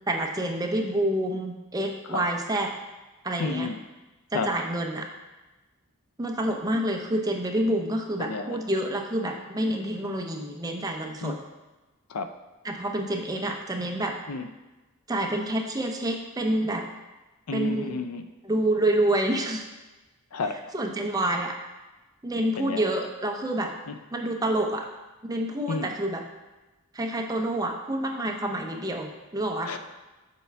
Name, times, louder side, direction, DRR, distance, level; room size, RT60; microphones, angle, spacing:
voice 1, 0.1-2.7 3.2-3.7 4.3-5.1 6.2-11.3 12.6-14.1 15.1-16.9 17.5-18.0 18.4-19.6 20.7-21.5 22.2-23.7 24.1-24.9 25.2-26.2 26.9-29.7, right 1 dB, 15° right, 2 dB, 0.5 m, -28 dB
voice 2, 3.4-3.8 4.3-4.5 8.2-8.6 11.2-11.4 12.1-12.3 14.3-14.5 17.5-18.3 20.3-20.7 22.6-22.9 23.9-24.0 25.7-25.9 29.6-29.8, left 4 dB, 75° left, 8 dB, 0.5 m, -31 dB
6.9 x 4.4 x 3.4 m, 1.1 s
head